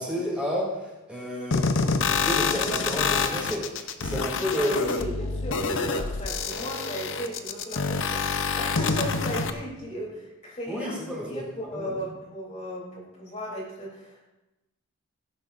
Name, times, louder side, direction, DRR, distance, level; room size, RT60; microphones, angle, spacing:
voice 1, 0.0-5.0 10.7-11.9, equal, 5° right, -6 dB, 3.0 m, -31 dB
sound 1, 1.5-9.5, left 4 dB, 60° left, 0.8 m, -27 dB
voice 2, 4.5-10.9 11.2-14.3, equal, 30° left, -4 dB, 3.3 m, -36 dB
17.5 x 10.0 x 2.6 m, 1.0 s
head